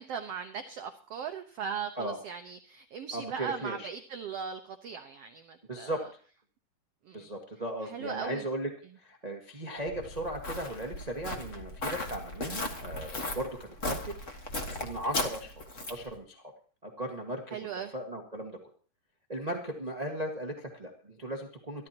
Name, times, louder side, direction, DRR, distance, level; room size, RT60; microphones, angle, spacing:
voice 1, 0.0-6.0 7.0-7.3 7.8-8.4 17.5-17.9, right 7 dB, 90° right, 7 dB, 1.3 m, -38 dB
voice 2, 3.1-3.9 5.7-6.1 7.1-8.7 9.0-14.1 14.8-15.6 15.9-16.4 16.8-17.6 17.9-18.6 19.3-21.9, right 1 dB, 40° right, 2 dB, 0.5 m, -37 dB
Walk footsteps, 9.9-16.1, left 2 dB, 55° left, 0.8 m, -37 dB
24.0 x 12.5 x 2.9 m, 0.41 s
omnidirectional pair, 3.9 m